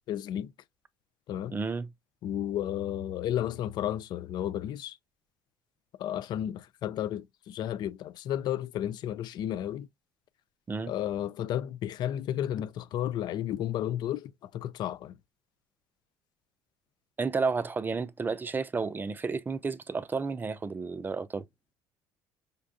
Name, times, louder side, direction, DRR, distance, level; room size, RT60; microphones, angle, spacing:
voice 1, 0.1-0.5 1.3-1.6 2.2-4.9 6.0-9.8 10.9-14.2 14.5-15.1, left 11 dB, 60° left, 0.4 m, -32 dB
voice 2, 1.5-1.9 10.7-10.9 17.2-21.4, right 4 dB, 25° right, 0.4 m, -31 dB
5.1 x 2.3 x 2.6 m
supercardioid pair, 85°, 8 cm